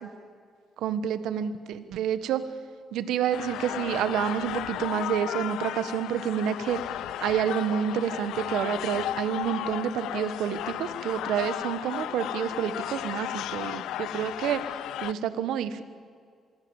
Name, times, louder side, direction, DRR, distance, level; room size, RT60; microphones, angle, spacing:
voice 1, 0.8-2.4 2.9-6.8 7.2-14.6 15.0-15.8, right 9 dB, 85° right, 12 dB, 1.5 m, -29 dB
sound 1, 3.3-15.1, left 13 dB, 85° left, 0.6 m, -34 dB
26.0 x 22.5 x 7.3 m, 2.1 s
cardioid pair, 90°, 0 cm